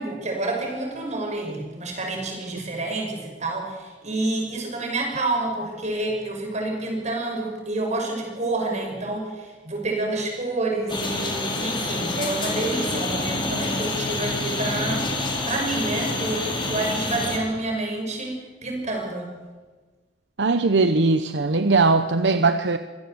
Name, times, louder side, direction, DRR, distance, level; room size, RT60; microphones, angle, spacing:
voice 1, 0.0-15.0 15.4-18.4 18.6-19.3, right 2 dB, 40° right, 1 dB, 6.2 m, -28 dB
sound 1, 10.9-17.4, left 2 dB, 30° left, 4.2 m, -27 dB
voice 2, 20.4-22.8, right 3 dB, 70° right, 10 dB, 0.9 m, -20 dB
24.5 x 17.0 x 8.0 m, 1.3 s
head